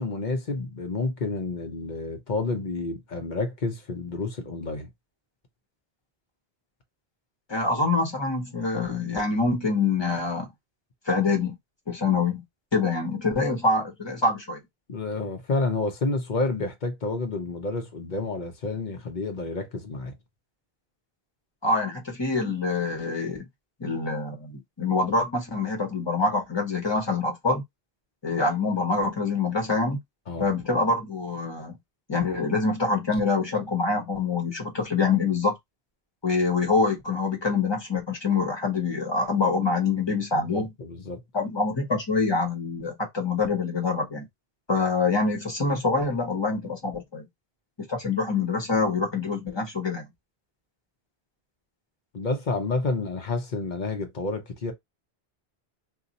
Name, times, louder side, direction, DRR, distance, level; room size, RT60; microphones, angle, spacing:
voice 1, 0.0-4.9 14.9-20.1 30.3-30.5 40.5-41.2 52.1-54.7, left 3 dB, 50° left, 0.9 m, -29 dB
voice 2, 7.5-10.5 11.1-11.6 11.9-12.4 12.7-14.6 21.6-23.4 23.8-27.6 28.2-30.0 30.4-31.8 32.1-35.5 36.2-40.7 41.3-44.3 44.7-47.3 47.8-50.0, left 3 dB, 25° left, 1.0 m, -25 dB
2.7 x 2.4 x 3.9 m
omnidirectional pair, 1.1 m